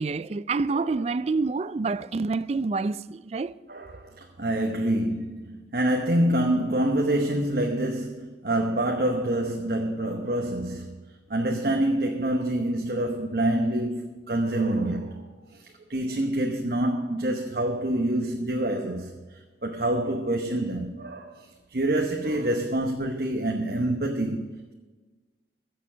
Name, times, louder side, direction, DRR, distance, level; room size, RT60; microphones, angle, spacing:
voice 1, 0.0-3.6, right 3 dB, 35° right, 0.3 m, -27 dB
voice 2, 3.7-11.0 11.3-15.2 15.5-24.7, right 1 dB, 55° right, 1.0 m, -27 dB
15.5 x 7.0 x 6.2 m
head